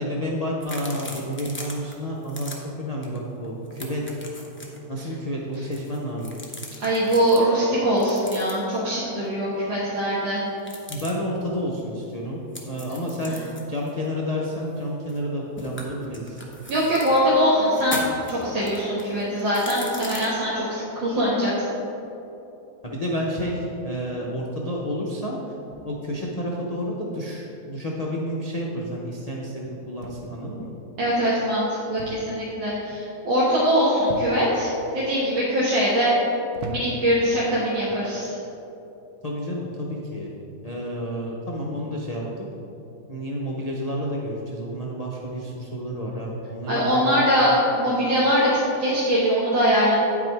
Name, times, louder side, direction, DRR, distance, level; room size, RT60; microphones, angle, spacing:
voice 1, 0.0-4.0 4.9-6.3 10.9-13.4 13.7-16.4 22.8-25.4 25.8-30.7 39.2-40.3 40.6-42.2 43.1-47.3, equal, 80° left, -4 dB, 0.3 m, -30 dB
sound 1, 0.6-1.9 2.2-2.6 3.0-3.2 3.4-4.8 5.5-7.4 8.0-8.8 10.6-11.1 12.5-15.3 15.6-17.2 17.7-20.3, left 1 dB, 15° left, 0.5 m, -38 dB
voice 2, 6.8-10.4 16.7-21.6 31.0-36.1 36.7-38.4 46.7-50.0, equal, 90° right, -9 dB, 2.2 m, -22 dB
sound 2, 30.0-30.5 32.0-32.4 32.7-33.1 34.1-34.6 35.3-35.7 36.5-37.2 38.1-38.4, right 1 dB, 65° right, 1.1 m, -37 dB
9.1 x 6.0 x 4.6 m, 3.0 s
omnidirectional pair, 2.0 m